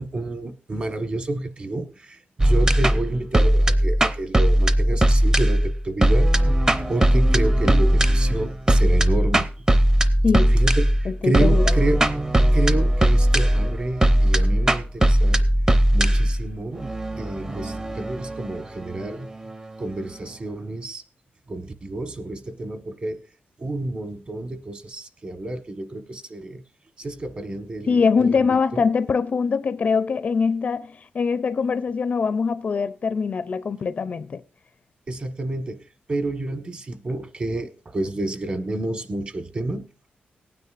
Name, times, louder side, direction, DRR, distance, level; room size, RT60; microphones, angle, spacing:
voice 1, 0.0-6.3 6.9-9.5 10.5-12.3 12.5-15.4 15.9-19.3 19.8-21.0 21.5-23.2 23.6-26.6 27.0-28.0 28.3-28.8 35.1-39.8, right 2 dB, 35° right, 1.2 m, -29 dB
sound 1, 2.4-19.5, right 1 dB, 20° right, 0.6 m, -19 dB
voice 2, 10.2-10.6 11.1-11.8 27.9-34.4, left 5 dB, 45° left, 0.4 m, -23 dB
18.5 x 9.4 x 2.4 m
wide cardioid pair, 145°, 4 cm